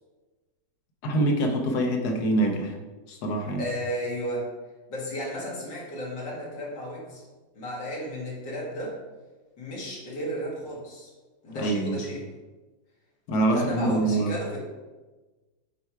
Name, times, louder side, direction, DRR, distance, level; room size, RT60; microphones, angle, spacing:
voice 1, 1.0-2.7 3.1-3.6 11.5-12.0 13.3-14.3, right 2 dB, 65° left, 3 dB, 1.5 m, -25 dB
voice 2, 3.6-4.5 4.9-7.2 7.5-9.0 9.6-11.1 11.4-12.3 13.5-14.6, equal, 85° left, -5 dB, 2.6 m, -33 dB
6.9 x 4.6 x 4.6 m, 1.2 s
omnidirectional pair, 1.9 m